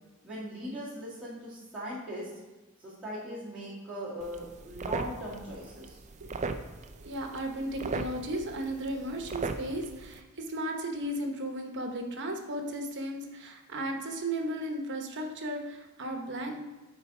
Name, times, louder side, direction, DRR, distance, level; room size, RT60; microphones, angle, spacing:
voice 1, 0.2-2.3 2.8-6.0, equal, 5° right, -11 dB, 2.1 m, -39 dB
sound 1, 4.2-10.2, right 3 dB, 35° right, 0.4 m, -38 dB
voice 2, 7.0-16.6, right 1 dB, 55° right, 3 dB, 1.0 m, -35 dB
9.0 x 4.1 x 4.9 m, 1.2 s
head